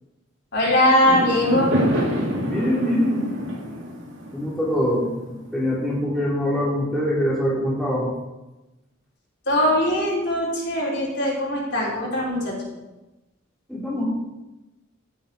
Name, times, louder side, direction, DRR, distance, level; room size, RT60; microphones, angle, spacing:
voice 1, 0.5-1.7 9.5-12.5, left 1 dB, 60° left, -4 dB, 3.7 m, -21 dB
Fireworks, 1.0-5.5, equal, 75° right, 2.7 m, -26 dB
voice 2, 2.4-3.3 4.3-8.1 13.7-14.0, equal, ahead, -6 dB, 3.1 m, -24 dB
15.5 x 7.0 x 4.6 m, 1.0 s
head